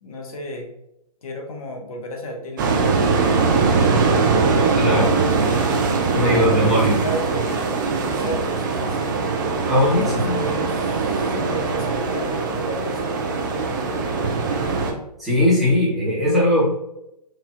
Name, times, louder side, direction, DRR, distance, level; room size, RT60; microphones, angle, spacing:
voice 1, 0.0-0.7 1.2-4.3 4.9-5.7 6.2-7.8 8.0-9.5 9.8-14.8, equal, 60° left, 1 dB, 0.9 m, -33 dB
sound 1, 2.6-14.9, right 4 dB, 30° right, 0.4 m, -21 dB
voice 2, 4.8-5.1 6.1-7.0 9.7-10.4 15.2-16.6, left 1 dB, ahead, -10 dB, 1.3 m, -19 dB
4.1 x 2.7 x 2.4 m, 0.83 s
figure-of-eight pair, 135°, 21 cm